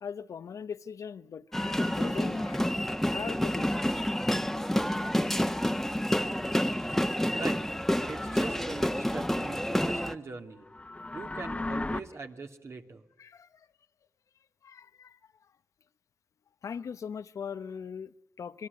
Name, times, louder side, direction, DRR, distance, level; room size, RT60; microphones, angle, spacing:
voice 1, 0.0-3.7 8.2-8.4 13.2-13.7 14.6-15.2 16.6-18.7, left 7 dB, 80° left, 0.9 m, -40 dB
sound 1, 1.5-10.2, equal, 5° left, 1.3 m, -29 dB
voice 2, 7.3-7.6 8.1-10.7 11.1-13.1, right 3 dB, 55° right, 2.6 m, -41 dB
sound 2, 10.6-12.0, left 2 dB, 25° left, 1.2 m, -35 dB
27.0 x 20.5 x 9.6 m
cardioid pair, 70°, 5 cm